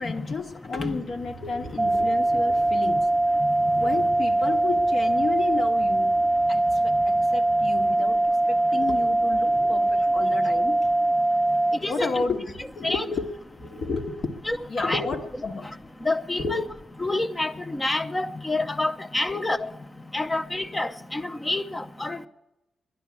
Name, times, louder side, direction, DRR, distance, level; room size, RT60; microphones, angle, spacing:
voice 1, 0.0-3.1 3.8-6.2 6.5-10.8 11.1-11.2 11.4-13.3 13.6-14.3 14.7-15.7 16.4-16.6, left 4 dB, 55° left, 1.4 m, -32 dB
sound 1, 1.1-8.0, right 8 dB, 85° right, 0.6 m, -47 dB
sound 2, 1.8-11.8, right 2 dB, 20° right, 0.6 m, -22 dB
voice 2, 14.5-15.1 16.0-16.6 17.0-19.7 20.1-22.3, left 2 dB, 20° left, 0.7 m, -28 dB
12.5 x 11.0 x 8.5 m
cardioid pair, 115°, 0 cm